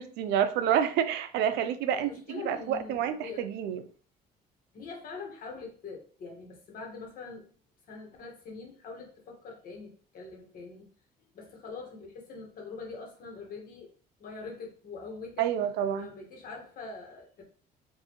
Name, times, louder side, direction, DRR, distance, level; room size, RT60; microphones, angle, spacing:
voice 1, 0.0-3.8 15.4-16.1, right 9 dB, 85° right, 0.5 m, -28 dB
voice 2, 1.9-3.4 4.7-7.5 7.9-10.9 11.3-13.9 14.2-15.5 15.9-17.4, left 4 dB, 55° left, 1.4 m, -43 dB
4.5 x 2.7 x 3.0 m
cardioid pair, 110°, 17 cm